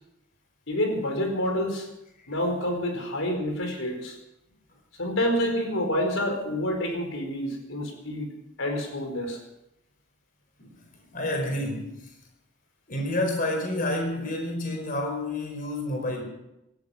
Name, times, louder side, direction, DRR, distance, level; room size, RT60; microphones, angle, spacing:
voice 1, 0.7-1.9 2.3-4.2 5.0-9.4, equal, 75° left, 3 dB, 4.7 m, -28 dB
voice 2, 10.6-12.0 12.9-16.2, left 1 dB, 40° left, 2 dB, 4.8 m, -29 dB
17.5 x 14.0 x 5.8 m, 0.87 s
head